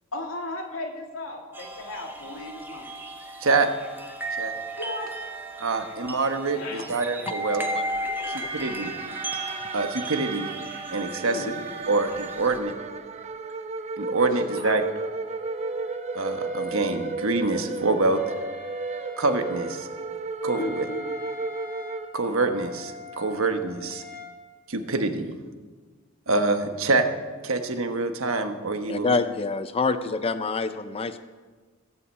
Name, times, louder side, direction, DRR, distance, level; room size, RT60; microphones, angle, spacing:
voice 1, 0.1-3.0 4.8-5.2 6.1-6.3 6.5-6.9 11.2-11.6 14.5-14.8 20.5-21.1, left 2 dB, 85° left, 1 dB, 2.4 m, -36 dB
sound 1, 1.5-12.6, right 1 dB, 10° right, 1.3 m, -35 dB
voice 2, 5.6-7.7 8.5-8.9 9.7-10.5 10.9-11.5 11.9-12.7 14.0-14.8 16.1-18.2 19.2-19.9 20.4-20.8 22.1-24.0 24.7-25.3 26.3-27.1 27.4-29.2, right 3 dB, 80° right, 7 dB, 1.2 m, -25 dB
sound 2, 7.4-22.7, right 3 dB, 35° right, 0.7 m, -34 dB
voice 3, 8.1-8.5 9.5-9.6 28.9-31.2, left 4 dB, 30° left, 10 dB, 0.5 m, -27 dB
Wind instrument woodwind instrument, 14.4-24.4, left 4 dB, 55° left, 2.3 m, -44 dB
16.5 x 5.8 x 8.4 m, 1.4 s
head